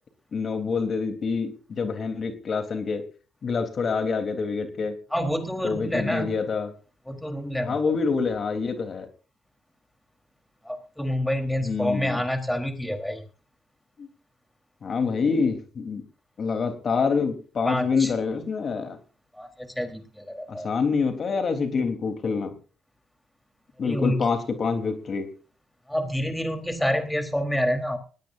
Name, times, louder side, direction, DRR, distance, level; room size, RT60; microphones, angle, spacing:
voice 1, 0.3-3.0 3.4-5.0 5.6-6.7 7.6-9.1 11.6-12.2 14.0-14.1 14.8-16.0 16.4-19.0 20.5-22.5 23.8-25.3, left 5 dB, 50° left, 7 dB, 3.6 m, -26 dB
voice 2, 5.1-6.4 7.1-8.0 10.6-13.2 17.7-18.1 19.3-20.7 23.8-24.2 25.9-28.0, equal, 5° left, 5 dB, 3.9 m, -28 dB
20.0 x 17.5 x 2.7 m, 0.38 s
cardioid pair, 90°, 0 cm